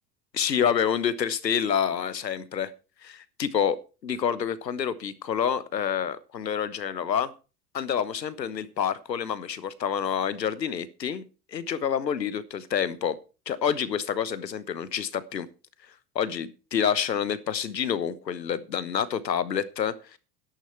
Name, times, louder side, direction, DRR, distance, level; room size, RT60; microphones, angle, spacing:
voice 1, 0.3-2.7 3.0-7.3 7.7-11.2 11.5-13.2 13.5-15.5 16.1-20.2, left 8 dB, 85° left, 16 dB, 1.2 m, -28 dB
12.5 x 11.0 x 4.5 m, 0.33 s
figure-of-eight pair, 75°, 49 cm